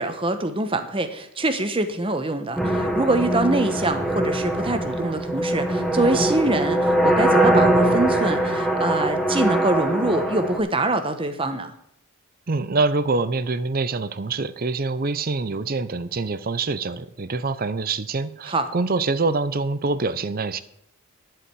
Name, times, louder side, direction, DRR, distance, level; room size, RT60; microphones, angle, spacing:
voice 1, 0.0-11.7 18.5-18.7, right 2 dB, 25° right, 8 dB, 0.9 m, -24 dB
sound 1, 2.6-10.6, right 1 dB, ahead, 1.1 m, -22 dB
voice 2, 12.5-20.6, right 3 dB, 40° right, 14 dB, 0.6 m, -25 dB
11.0 x 5.0 x 8.4 m, 0.75 s
head